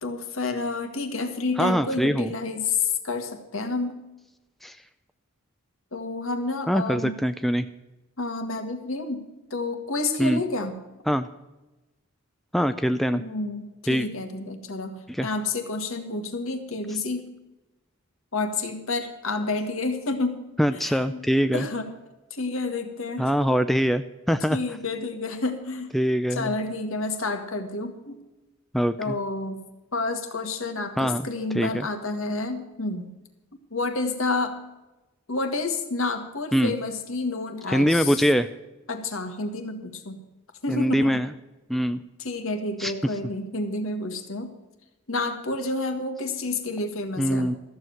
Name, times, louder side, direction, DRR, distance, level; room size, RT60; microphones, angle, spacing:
voice 1, 0.0-4.0 5.9-7.2 8.2-10.8 13.1-17.3 18.3-20.4 20.7-21.2 21.5-21.9 22.3-23.3 24.5-25.9 26.3-28.2 29.0-29.6 29.9-33.1 33.7-34.6 35.3-38.3 38.9-40.2 40.6-41.2 42.2-44.5 45.1-47.5, left 3 dB, 70° left, 6 dB, 1.8 m, -29 dB
voice 2, 1.6-2.3 4.6-4.8 6.7-7.7 10.2-10.4 11.1-11.3 12.5-13.2 13.9-14.1 15.1-15.3 20.6-21.7 23.2-24.6 25.9-26.5 28.7-29.2 31.0-31.3 31.5-31.9 36.5-36.8 37.7-38.5 40.7-41.3 41.7-42.0 42.8-42.9 47.2-47.6, equal, ahead, 9 dB, 0.3 m, -23 dB
14.0 x 7.5 x 7.8 m, 1.1 s
head